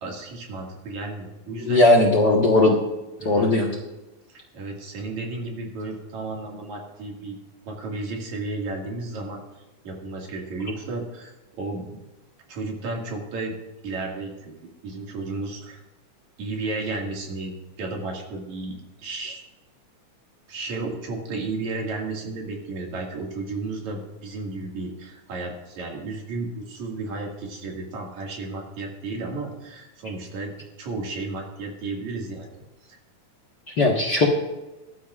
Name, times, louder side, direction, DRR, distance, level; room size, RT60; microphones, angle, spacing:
voice 1, 0.0-1.9 3.2-3.5 4.3-7.4 7.7-9.4 9.8-12.0 12.5-13.6 13.8-14.5 14.8-15.8 16.4-19.4 20.5-32.6 32.9-33.0, right 3 dB, 70° right, 0 dB, 3.4 m, -33 dB
voice 2, 1.6-2.8 3.2-3.7 33.8-34.3, left 2 dB, 45° left, -1 dB, 1.4 m, -18 dB
21.5 x 11.5 x 2.4 m, 1.1 s
omnidirectional pair, 3.4 m